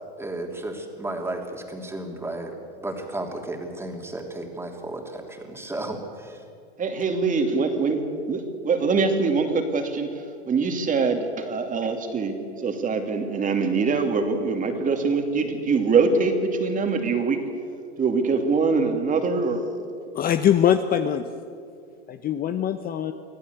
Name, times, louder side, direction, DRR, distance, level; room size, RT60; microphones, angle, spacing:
voice 1, 0.2-6.4, right 2 dB, 5° right, 2 dB, 3.1 m, -33 dB
voice 2, 6.8-10.2 10.5-12.3 12.6-17.4 18.0-19.6, right 4 dB, 25° right, 5 dB, 2.7 m, -23 dB
voice 3, 20.1-21.3 22.1-23.1, left 9 dB, 25° left, 9 dB, 0.9 m, -22 dB
25.0 x 15.5 x 8.2 m, 2.3 s
hypercardioid pair, 125°, 34 cm